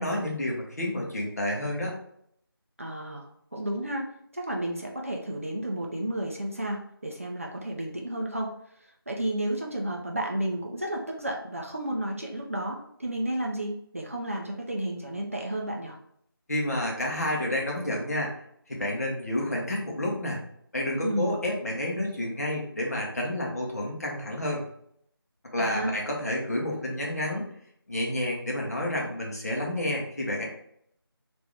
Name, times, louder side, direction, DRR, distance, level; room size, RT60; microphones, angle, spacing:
voice 1, 0.0-2.0 16.5-18.3 18.7-20.4 20.7-24.7 25.5-27.5 27.9-30.4, left 1 dB, 40° left, -1 dB, 0.8 m, -30 dB
voice 2, 2.8-4.1 4.3-8.5 9.1-16.0 21.0-21.5 25.6-25.9, right 1 dB, 35° right, -1 dB, 0.4 m, -32 dB
3.3 x 2.5 x 3.3 m, 0.69 s
figure-of-eight pair, 165°, 13 cm